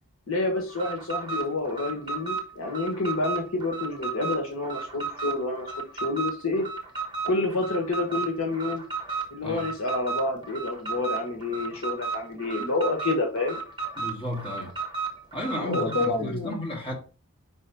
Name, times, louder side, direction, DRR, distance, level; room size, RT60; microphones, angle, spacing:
voice 1, 0.3-5.7 5.9-6.7 7.2-8.8 9.3-13.6 15.5-16.5, left 2 dB, 70° left, 1.4 m, -28 dB
Alarm, 0.7-16.2, right 5 dB, 20° right, 1.2 m, -34 dB
voice 2, 14.0-14.7 15.3-16.9, left 1 dB, 25° left, 2.2 m, -33 dB
5.4 x 3.5 x 5.6 m
head